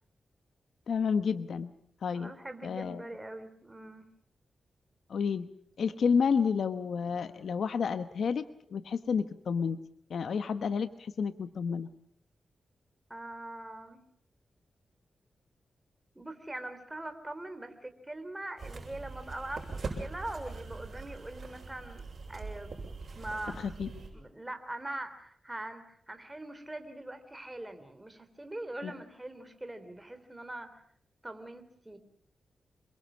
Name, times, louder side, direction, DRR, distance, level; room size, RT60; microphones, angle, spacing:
voice 1, 0.9-1.7 2.0-2.3 2.6-3.0 5.1-5.5 5.8-8.4 8.7-9.8 10.1-11.9 23.6-23.9 28.8-28.9, left 6 dB, 75° left, 11 dB, 1.0 m, -30 dB
voice 2, 2.1-4.1 13.1-14.0 16.2-22.0 22.3-22.7 23.1-23.7 24.1-30.8 31.2-32.0, right 1 dB, 15° right, 9 dB, 3.3 m, -42 dB
sound 1, 18.6-24.1, right 3 dB, 55° right, 7.4 m, -42 dB
27.5 x 23.0 x 6.3 m, 0.64 s
cardioid pair, 95°, 0 cm